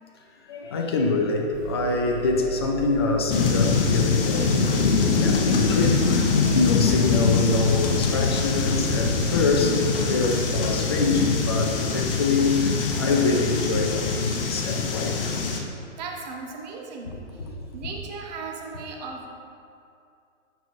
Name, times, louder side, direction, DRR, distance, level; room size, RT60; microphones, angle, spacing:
voice 1, 0.5-15.3, left 3 dB, 20° left, 2 dB, 0.3 m, -25 dB
sound 1, 1.5-9.4, right 2 dB, 10° right, 1.0 m, -38 dB
sound 2, 3.3-15.6, left 4 dB, 45° left, 0.9 m, -23 dB
voice 2, 15.9-17.2 17.7-19.3, right 4 dB, 35° right, 1 dB, 0.9 m, -36 dB
9.0 x 5.8 x 3.0 m, 2.5 s
hypercardioid pair, 135°, 38 cm